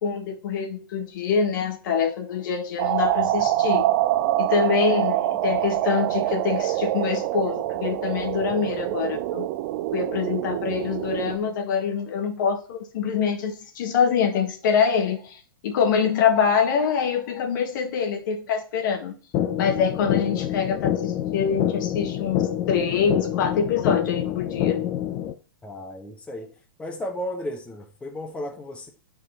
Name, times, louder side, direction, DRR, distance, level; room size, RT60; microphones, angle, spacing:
voice 1, 0.0-3.9 4.4-9.5 9.9-19.1 19.6-24.8, left 6 dB, 60° left, 1.6 m, -25 dB
sound 1, 2.8-11.4, right 14 dB, 45° right, 0.4 m, -25 dB
sound 2, 19.3-25.3, left 11 dB, 35° left, 0.7 m, -27 dB
voice 2, 25.6-26.5 26.8-28.9, left 1 dB, 10° left, 1.0 m, -34 dB
7.4 x 4.5 x 4.1 m
hypercardioid pair, 130°, 12 cm